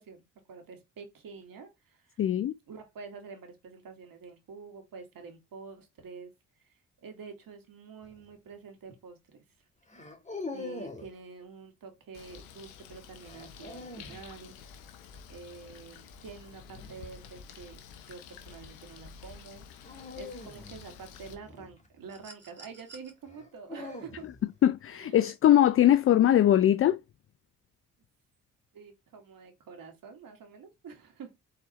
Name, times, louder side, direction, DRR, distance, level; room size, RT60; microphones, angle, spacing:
voice 1, 0.0-2.2 2.7-6.3 7.0-9.2 10.5-14.8 15.3-19.6 20.2-24.3 24.9-25.2 28.7-31.4, right 5 dB, 60° right, 1.7 m, -47 dB
voice 2, 2.2-2.5 24.6-27.0, left 11 dB, 35° left, 0.4 m, -21 dB
sound 1, 8.0-8.4 9.9-11.1 13.2-14.2 16.7-17.1 19.8-22.2 23.3-24.6, left 3 dB, 20° left, 1.5 m, -43 dB
Bird, 12.1-21.3, left 6 dB, 85° left, 0.7 m, -50 dB
sound 2, 22.1-23.1 24.6-24.8, right 3 dB, 30° right, 1.8 m, -51 dB
4.1 x 4.0 x 3.0 m
hypercardioid pair, 45°, 38 cm